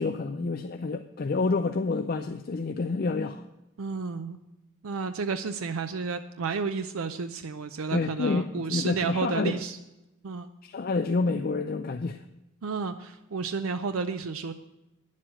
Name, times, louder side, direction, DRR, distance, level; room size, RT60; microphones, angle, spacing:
voice 1, 0.0-3.4 7.9-9.6 10.6-12.2, left 3 dB, 45° left, 0.4 m, -28 dB
voice 2, 3.8-4.4 4.8-9.8 10.2-10.5 12.6-14.5, right 4 dB, 80° right, 0.5 m, -31 dB
10.0 x 7.5 x 7.5 m
head